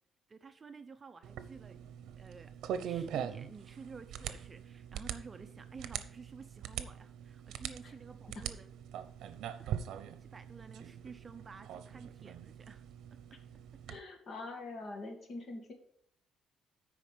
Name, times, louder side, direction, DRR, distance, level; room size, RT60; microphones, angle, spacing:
voice 1, 0.3-8.7 9.6-9.7 10.2-12.8 13.1-13.4 13.7-13.9, right 5 dB, 25° right, 9 dB, 0.7 m, -52 dB
sound 1, 1.2-14.0, right 9 dB, 80° right, 0.7 m, -43 dB
voice 2, 13.9-15.7, left 2 dB, 50° left, 3 dB, 2.1 m, -44 dB
9.0 x 5.1 x 6.7 m, 0.67 s
cardioid pair, 140°, 0 cm